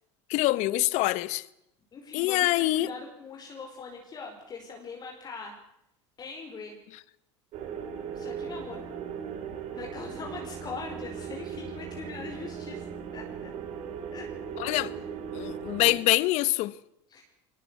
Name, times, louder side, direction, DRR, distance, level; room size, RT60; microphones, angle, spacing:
voice 1, 0.3-1.4 2.1-2.9 14.6-14.9 15.3-16.8, left 18 dB, 55° left, 1.1 m, -25 dB
voice 2, 1.9-5.6 6.2-6.8 8.1-8.8 9.7-12.9 13.1-13.5 14.1-14.3 17.1-17.2, left 4 dB, 30° left, 4.9 m, -41 dB
sound 1, 7.5-16.0, right 7 dB, 50° right, 4.9 m, -38 dB
23.0 x 19.5 x 8.3 m
supercardioid pair, 130°, 14 cm